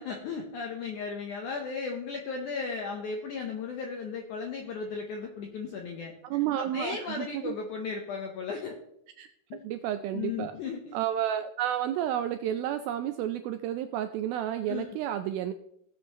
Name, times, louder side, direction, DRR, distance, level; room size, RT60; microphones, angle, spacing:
voice 1, 0.0-6.1 6.6-8.8 9.5-9.6 10.1-11.0 14.7-14.9, left 5 dB, 80° left, 2 dB, 1.8 m, -35 dB
voice 2, 6.2-7.6 9.2-9.3 9.6-10.5 10.9-15.5, right 11 dB, 85° right, 9 dB, 2.1 m, -31 dB
17.0 x 7.4 x 3.0 m, 0.77 s
omnidirectional pair, 4.7 m